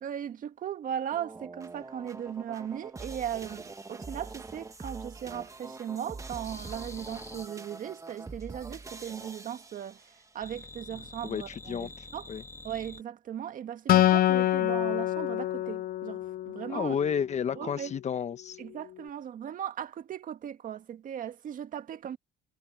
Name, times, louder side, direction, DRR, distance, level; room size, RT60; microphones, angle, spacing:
voice 1, 0.0-12.3 12.6-17.0 17.6-17.9 18.6-22.2, right 9 dB, 50° right, 1.8 m, -38 dB
sound 1, 1.1-10.3, right 3 dB, 20° right, 1.9 m, -44 dB
sound 2, 6.4-7.5 10.4-13.0, left 2 dB, 15° left, 2.2 m, -47 dB
voice 2, 11.2-12.4 16.7-18.6, left 7 dB, 40° left, 1.3 m, -32 dB
Acoustic guitar, 13.9-17.3, left 13 dB, 60° left, 0.6 m, -26 dB
cardioid pair, 110°, 17 cm